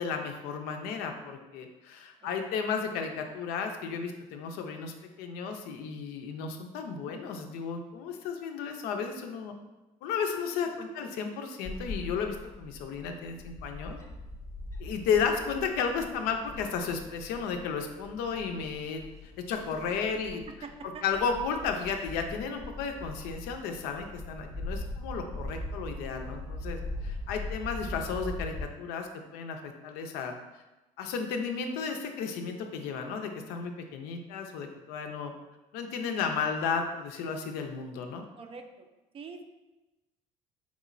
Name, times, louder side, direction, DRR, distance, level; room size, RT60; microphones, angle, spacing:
voice 1, 0.0-9.5 10.0-14.0 14.8-19.0 19.4-20.4 21.0-30.3 31.0-35.3 35.7-38.2, left 6 dB, 80° left, 5 dB, 0.5 m, -33 dB
Bird / Wind, 11.6-28.6, left 1 dB, 20° left, 0.7 m, -41 dB
voice 2, 20.1-21.0 38.4-38.9 39.1-39.5, right 5 dB, 35° right, 5 dB, 0.4 m, -45 dB
3.6 x 3.0 x 2.5 m, 1.1 s
supercardioid pair, 90°, 16 cm